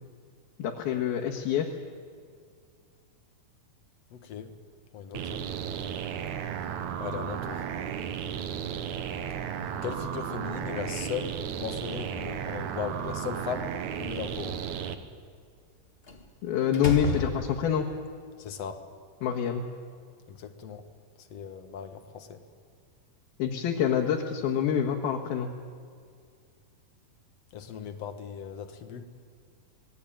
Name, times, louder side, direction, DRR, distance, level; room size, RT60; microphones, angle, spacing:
voice 1, 0.6-1.7 16.4-17.9 19.2-19.7 23.4-25.5, left 8 dB, 80° left, 0 dB, 3.4 m, -26 dB
voice 2, 4.1-4.5 4.9-5.4 7.0-7.6 9.8-13.7 14.0-14.6 18.4-18.8 20.3-20.8 21.3-22.4 27.5-29.1, left 7 dB, 55° left, 8 dB, 2.2 m, -37 dB
sound 1, 5.1-15.0, right 8 dB, 65° right, 2.2 m, -34 dB
Slam, 12.9-13.9 16.1-16.3 16.7-18.0, left 2 dB, 40° left, 0.8 m, -35 dB
26.5 x 20.5 x 8.9 m, 2.1 s
omnidirectional pair, 4.3 m